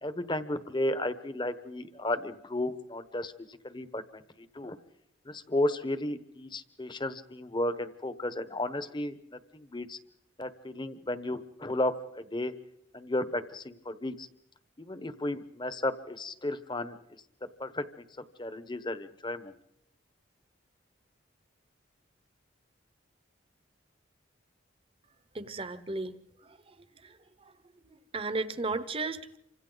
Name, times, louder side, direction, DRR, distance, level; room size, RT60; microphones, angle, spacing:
voice 1, 0.0-4.2 4.5-4.8 5.3-9.1 9.5-10.0 10.4-12.5 12.9-14.3 14.8-17.0 17.6-17.8 18.4-19.5, left 1 dB, 25° left, 11 dB, 1.1 m, -33 dB
voice 2, 25.3-26.2 26.5-26.6 27.0-27.1 27.4-27.5 27.8-29.4, right 3 dB, 30° right, 12 dB, 1.0 m, -35 dB
28.5 x 25.5 x 4.0 m, 0.81 s
head